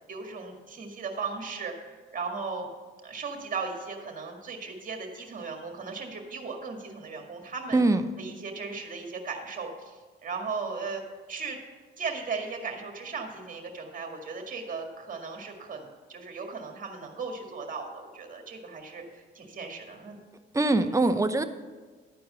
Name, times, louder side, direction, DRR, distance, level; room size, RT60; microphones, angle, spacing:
voice 1, 0.1-2.7 3.0-7.8 8.2-11.0 11.3-11.6 12.0-20.2, right 4 dB, 45° right, 3 dB, 1.9 m, -37 dB
voice 2, 7.7-8.1 20.5-21.4, right 2 dB, 15° right, 8 dB, 0.7 m, -23 dB
12.0 x 4.6 x 7.4 m, 1.4 s
cardioid pair, 90°, 20 cm